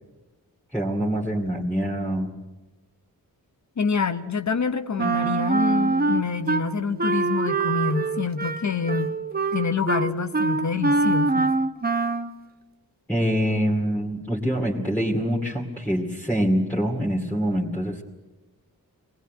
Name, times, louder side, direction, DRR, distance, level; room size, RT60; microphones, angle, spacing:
voice 1, 0.7-2.3 13.1-18.0, equal, 5° left, -3 dB, 2.5 m, -25 dB
voice 2, 3.8-9.1 9.5-11.5, left 5 dB, 50° left, 9 dB, 1.0 m, -26 dB
Wind instrument woodwind instrument, 5.0-6.6 7.0-12.3, right 3 dB, 25° right, 1.0 m, -24 dB
sound 1, 5.0-9.3, right 6 dB, 90° right, 1.0 m, -38 dB
25.5 x 19.5 x 9.3 m, 1.2 s
wide cardioid pair, 155°, 36 cm